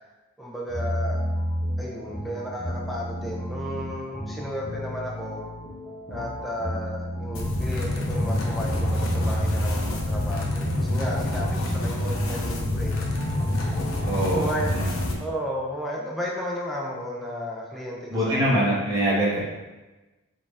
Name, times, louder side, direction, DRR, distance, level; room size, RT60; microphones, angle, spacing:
voice 1, 0.4-1.3 1.8-5.4 6.1-12.9 14.1-14.7 15.2-18.6, equal, ahead, -4 dB, 0.6 m, -33 dB
sound 1, 0.7-15.2, equal, 20° left, 1.0 m, -32 dB
sound 2, 7.3-15.1, left 1 dB, 65° left, 0.7 m, -27 dB
voice 2, 14.0-14.4 14.7-14.9 18.1-19.4, right 1 dB, 20° right, -8 dB, 1.5 m, -23 dB
5.5 x 2.8 x 3.4 m, 1.1 s
head